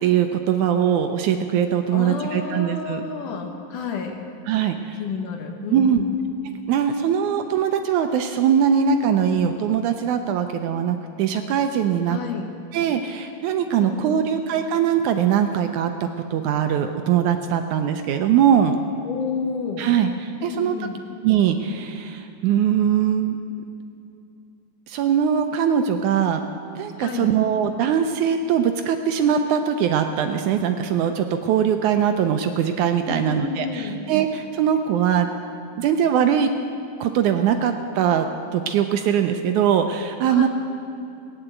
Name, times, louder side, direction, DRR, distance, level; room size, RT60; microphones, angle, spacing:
voice 1, 0.0-3.0 4.5-5.0 5.7-6.0 6.7-12.2 12.7-18.8 19.8-20.9 21.2-23.4 24.9-26.4 26.8-35.3 35.8-36.5 37.0-38.3 38.5-40.5, right 8 dB, 80° right, 6 dB, 1.9 m, -21 dB
voice 2, 1.9-4.2 5.0-6.1 12.1-12.5 13.7-14.3 19.0-20.0 20.4-21.0 27.0-27.4 33.1-34.0 40.3-40.5, left 6 dB, 70° left, 4 dB, 2.7 m, -30 dB
17.5 x 9.9 x 8.1 m, 2.7 s
omnidirectional pair, 3.9 m